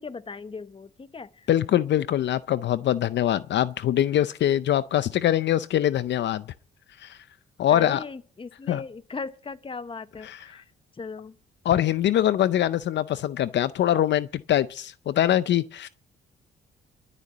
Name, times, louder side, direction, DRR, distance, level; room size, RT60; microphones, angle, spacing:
voice 1, 0.0-1.5 7.7-11.4, left 4 dB, 25° left, 1.0 m, -38 dB
voice 2, 1.5-6.4 7.0-7.2 7.6-8.0 8.7-8.8 10.2-10.4 11.6-15.9, left 11 dB, 65° left, 0.6 m, -23 dB
13.0 x 6.9 x 9.4 m
cardioid pair, 90°, 20 cm